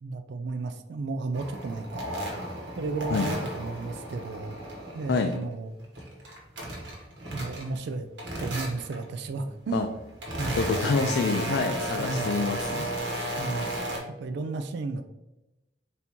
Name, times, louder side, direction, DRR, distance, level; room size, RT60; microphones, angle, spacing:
voice 1, 0.0-2.1 2.8-4.6 4.9-5.7 7.3-8.1 8.4-9.9 10.4-10.6 12.0-12.3 13.4-13.7 14.1-15.0, right 3 dB, 65° right, 7 dB, 0.3 m, -33 dB
sound 1, 1.3-5.4 5.8-7.9 8.2-9.0 9.7-14.0, right 1 dB, 80° right, 1.2 m, -34 dB
voice 2, 10.5-12.9, left 4 dB, 60° left, 5 dB, 0.3 m, -27 dB
4.1 x 3.5 x 2.9 m, 0.99 s
head